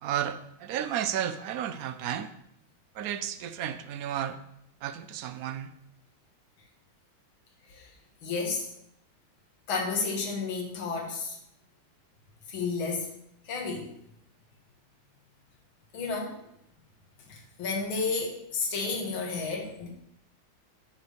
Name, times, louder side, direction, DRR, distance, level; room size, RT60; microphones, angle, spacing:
voice 1, 0.0-2.3 3.0-4.4 4.8-5.7, right 10 dB, 75° right, 10 dB, 0.8 m, -32 dB
voice 2, 8.2-8.7 9.7-11.4 12.5-13.1 13.4-13.9 15.9-16.4 17.3-19.9, left 4 dB, 70° left, 0 dB, 2.5 m, -31 dB
8.6 x 7.8 x 5.1 m, 0.76 s
omnidirectional pair, 2.3 m